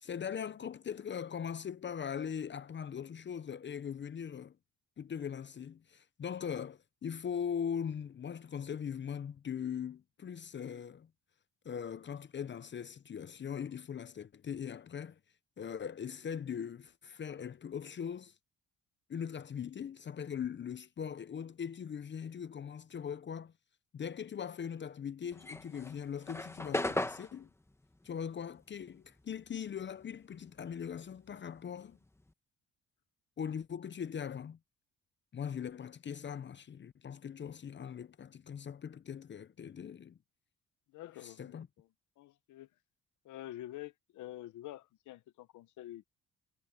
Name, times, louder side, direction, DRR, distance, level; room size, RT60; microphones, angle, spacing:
voice 1, 0.0-4.6 5.0-11.1 11.6-15.2 15.6-18.3 19.1-23.5 23.9-27.5 28.0-32.0 33.4-34.6 35.3-40.2 41.2-41.7, left 8 dB, 40° left, 0.7 m, -40 dB
sound 1, 25.3-30.0 30.3-32.3, left 1 dB, 10° left, 1.4 m, -39 dB
voice 2, 40.9-41.9 42.2-42.7 43.2-46.0, left 14 dB, 80° left, 0.9 m, -47 dB
cardioid pair, 90°, 30 cm